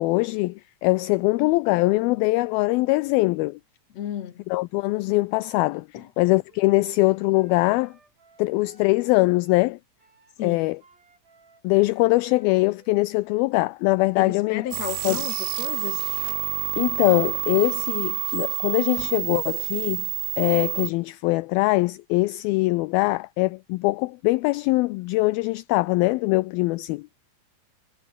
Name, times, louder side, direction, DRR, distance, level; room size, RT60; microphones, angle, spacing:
voice 1, 0.0-3.6 4.5-5.9 6.2-7.9 8.4-9.8 10.4-10.8 11.6-14.6 15.0-15.2 16.8-20.1 20.4-27.1, left 22 dB, 80° left, 2.2 m, -22 dB
voice 2, 3.9-4.4 5.9-6.1 10.4-10.7 14.2-16.0, left 11 dB, 50° left, 2.4 m, -33 dB
Wind instrument woodwind instrument, 6.5-9.7 10.0-13.4, right 4 dB, 60° right, 8.9 m, -58 dB
sound 1, 14.7-20.9, right 24 dB, 85° right, 2.1 m, -28 dB
omnidirectional pair, 4.7 m